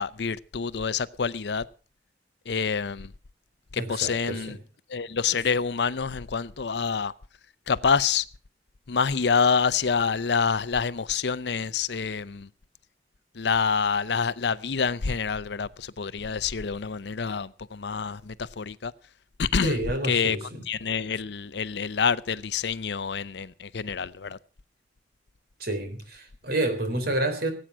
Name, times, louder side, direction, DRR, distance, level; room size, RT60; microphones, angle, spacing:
voice 1, 0.0-1.6 2.5-3.1 3.7-4.6 4.9-7.1 7.7-8.2 8.9-12.5 13.3-18.9 19.4-20.4 20.7-24.4, left 5 dB, 65° left, 0.6 m, -27 dB
voice 2, 3.8-4.5 19.6-20.6 25.6-27.5, right 1 dB, 60° right, 3.7 m, -29 dB
18.5 x 9.0 x 6.1 m
head